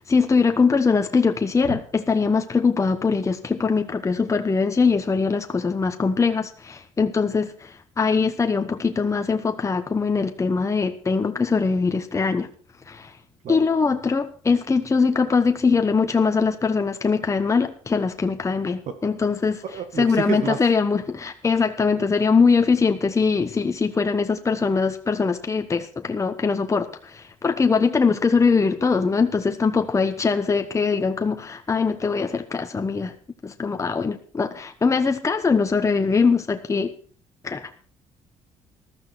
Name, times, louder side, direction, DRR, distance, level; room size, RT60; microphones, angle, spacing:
voice 1, 0.1-12.5 12.9-13.2 13.5-19.6 20.0-33.1 33.4-36.9 37.4-37.7, left 5 dB, 25° left, 7 dB, 1.1 m, -22 dB
voice 2, 19.6-20.6, right 6 dB, 65° right, 9 dB, 1.7 m, -29 dB
14.0 x 12.5 x 4.5 m, 0.42 s
supercardioid pair, 85°, 13 cm